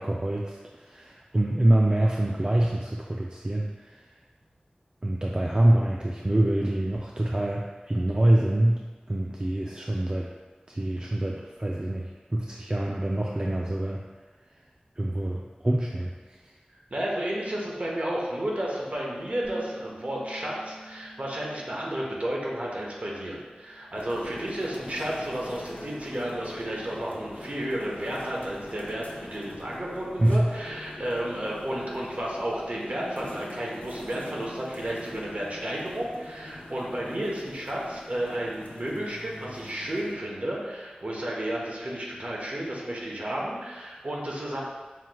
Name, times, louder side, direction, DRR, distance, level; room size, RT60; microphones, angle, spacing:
voice 1, 0.0-4.0 5.0-8.8 9.1-10.3 10.7-14.0 15.0-16.1 30.2-30.5, right 1 dB, 30° right, -2 dB, 0.3 m, -25 dB
voice 2, 16.9-44.6, right 1 dB, 55° right, -4 dB, 1.0 m, -32 dB
Bass guitar, 19.4-23.8 24.1-25.7, right 1 dB, 10° left, 0.6 m, -50 dB
sound 1, 23.9-40.1, left 1 dB, 60° left, 0.5 m, -43 dB
5.6 x 3.1 x 2.3 m, 1.3 s
wide cardioid pair, 55°, 3 cm